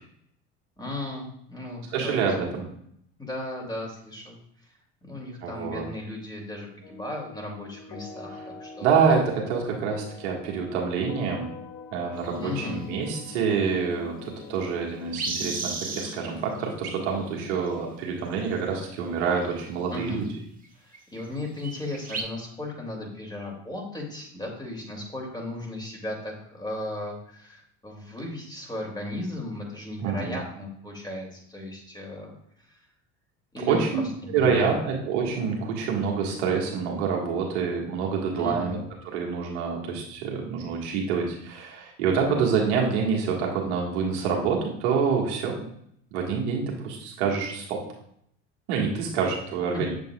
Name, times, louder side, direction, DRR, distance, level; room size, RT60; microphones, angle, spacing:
voice 1, 0.8-2.3 3.2-4.4 5.0-8.9 12.3-12.8 19.9-20.3 21.1-32.3 33.5-34.0 34.3-34.8 38.4-38.8 49.7-49.9, left 2 dB, 10° left, -1 dB, 2.6 m, -36 dB
voice 2, 1.9-2.7 5.4-5.9 8.8-11.5 11.9-20.3 30.0-30.4 33.7-34.0 34.3-38.8 39.0-45.6 46.1-47.8 48.7-49.9, right 6 dB, 80° right, -1 dB, 1.8 m, -26 dB
sound 1, 6.8-17.6, left 5 dB, 60° left, 1.1 m, -44 dB
sound 2, 12.2-12.8 13.9-14.0 14.3-14.4 14.6-16.3 16.6-17.7 18.8-19.0 19.3-20.3 20.6-20.7 20.9-21.3 21.6-22.2, right 4 dB, 25° right, 1.8 m, -35 dB
7.5 x 7.0 x 2.4 m, 0.70 s
hypercardioid pair, 75°, 34 cm